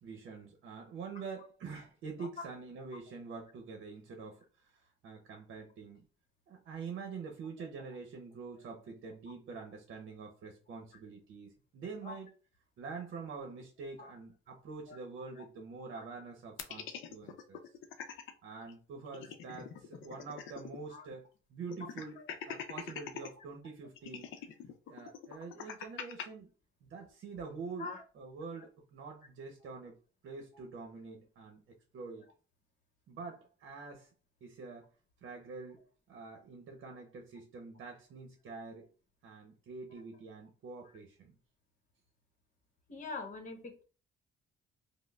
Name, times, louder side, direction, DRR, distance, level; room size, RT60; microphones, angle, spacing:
voice 1, 0.0-6.1 6.5-12.3 12.8-17.6 18.4-24.3 24.9-26.5 26.8-30.0 30.2-31.6 31.9-32.3 33.1-34.1 34.4-34.9 35.2-38.9 39.2-41.3, right 4 dB, 70° right, 0.7 m, -46 dB
sound 1, 16.6-18.3 18.7-18.8 19.1-20.8 21.1-21.2 21.7-23.3 24.0-26.3, left 8 dB, 80° left, 0.5 m, -44 dB
voice 2, 42.9-43.8, left 4 dB, 40° left, 1.0 m, -44 dB
5.1 x 2.0 x 2.3 m
cardioid pair, 90°, 20 cm